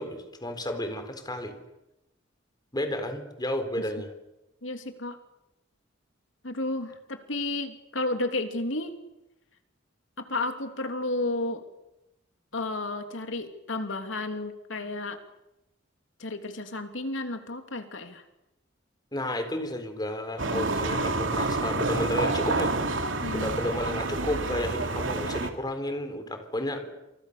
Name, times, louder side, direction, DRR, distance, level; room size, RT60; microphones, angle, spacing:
voice 1, 0.0-1.5 2.7-4.1 19.1-22.7 23.3-27.0, left 1 dB, 20° left, 8 dB, 4.1 m, -32 dB
voice 2, 4.6-5.2 6.4-8.9 10.2-11.6 12.5-15.2 16.2-18.2 23.2-23.5, left 2 dB, 80° left, 6 dB, 3.1 m, -32 dB
sound 1, 20.4-25.5, right 2 dB, 85° right, 2.8 m, -28 dB
29.0 x 28.0 x 6.8 m, 0.93 s
head